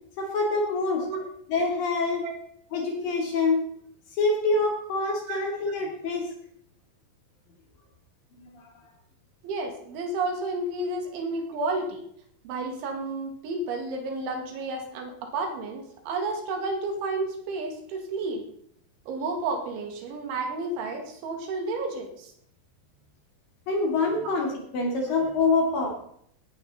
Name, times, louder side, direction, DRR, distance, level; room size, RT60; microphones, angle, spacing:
voice 1, 0.2-1.1 1.5-2.2 2.7-3.6 4.2-6.3 8.5-8.7 23.7-26.0, left 3 dB, 50° left, 1 dB, 3.8 m, -25 dB
voice 2, 9.4-12.0 12.4-18.4 19.1-22.3 24.2-24.3, right 3 dB, 75° right, 4 dB, 4.5 m, -31 dB
18.0 x 10.0 x 4.2 m, 0.67 s
omnidirectional pair, 5.5 m